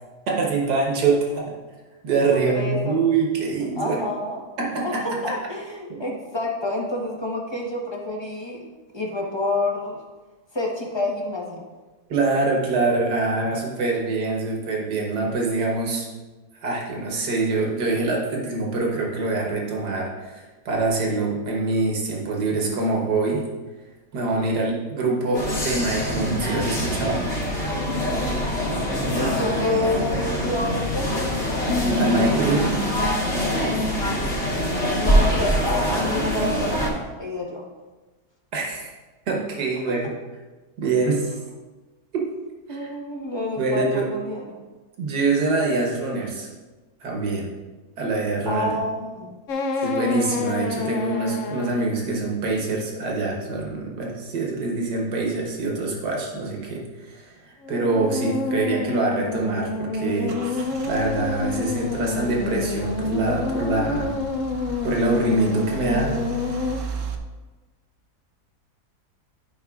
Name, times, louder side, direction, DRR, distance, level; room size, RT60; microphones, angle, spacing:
voice 1, 0.3-1.5 2.0-4.0 4.6-5.1 5.9-6.0 12.1-16.1 16.5-23.4 24.1-27.2 32.0-32.8 38.5-38.9 39.3-40.1 40.8-41.3 42.1-42.2 42.7-42.9 43.6-44.1 45.0-46.5 47.0-47.5 48.0-48.7 49.7-64.2 64.8-66.2, right 3 dB, 80° right, -1 dB, 1.8 m, -25 dB
voice 2, 2.3-3.0 3.8-4.4 4.8-8.6 8.9-10.0 10.5-11.7 29.0-31.3 34.8-36.9 37.2-37.6 42.7-44.6 48.5-49.4, left 1 dB, 20° left, -2 dB, 0.9 m, -28 dB
sound 1, 25.3-36.9, equal, 40° left, 1.7 m, -24 dB
sound 2, 49.5-52.0 57.6-66.8, left 3 dB, 65° left, 0.8 m, -28 dB
Car / Engine starting / Idling, 59.4-67.2, right 4 dB, 60° right, 0.9 m, -36 dB
11.5 x 5.2 x 2.4 m, 1.2 s
omnidirectional pair, 1.8 m